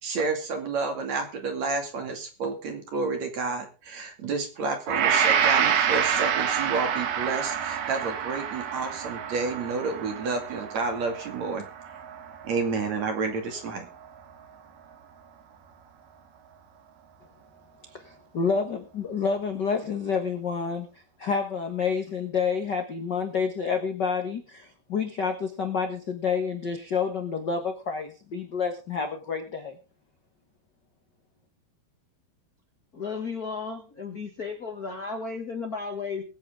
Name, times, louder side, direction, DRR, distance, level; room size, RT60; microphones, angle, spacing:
voice 1, 0.0-11.6 12.4-13.9, right 4 dB, 50° right, 5 dB, 3.4 m, -30 dB
Gong, 4.9-13.2 13.6-13.8, right 8 dB, 75° right, 3.5 m, -27 dB
voice 2, 17.9-20.9 21.2-29.8, left 5 dB, 90° left, 5 dB, 0.9 m, -29 dB
voice 3, 32.9-36.2, left 4 dB, 45° left, 3 dB, 1.2 m, -34 dB
22.0 x 8.7 x 3.7 m, 0.34 s
omnidirectional pair, 4.3 m